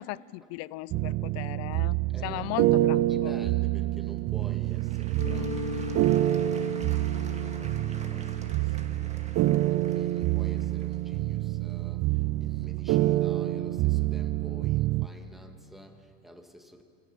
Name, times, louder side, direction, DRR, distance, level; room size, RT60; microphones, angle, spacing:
voice 1, 0.0-3.3, left 18 dB, 50° left, 22 dB, 0.5 m, -37 dB
sound 1, 0.9-15.1, right 16 dB, 45° right, 0.5 m, -27 dB
voice 2, 2.1-2.7 2.9-9.1 9.7-16.8, equal, ahead, 4 dB, 2.1 m, -50 dB
Applause / Crowd, 4.2-13.0 13.7-13.8, right 4 dB, 20° right, 2.0 m, -50 dB
Mallet percussion, 5.2-10.7, left 9 dB, 75° left, 2.7 m, -40 dB
24.5 x 16.0 x 7.1 m, 2.4 s
hypercardioid pair, 90°, 32 cm